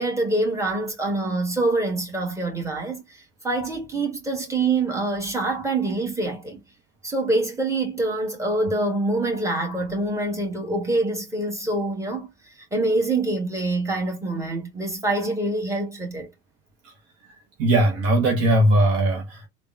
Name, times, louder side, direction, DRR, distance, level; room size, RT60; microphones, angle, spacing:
voice 1, 0.0-6.6 7.0-16.3, right 2 dB, 5° right, 1.4 m, -25 dB
voice 2, 17.6-19.5, right 1 dB, 40° right, 0.8 m, -19 dB
3.4 x 2.2 x 2.5 m
figure-of-eight pair, 70°, 39 cm